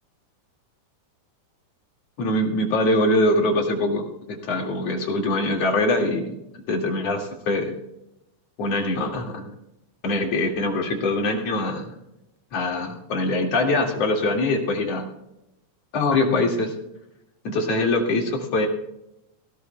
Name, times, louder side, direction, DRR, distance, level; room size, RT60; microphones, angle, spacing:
voice 1, 2.2-6.3 6.7-7.7 8.6-9.5 10.0-11.9 12.5-15.1 15.9-16.7 17.4-18.7, left 2 dB, 55° left, 1 dB, 3.2 m, -23 dB
17.5 x 17.0 x 2.3 m, 0.86 s
omnidirectional pair, 3.6 m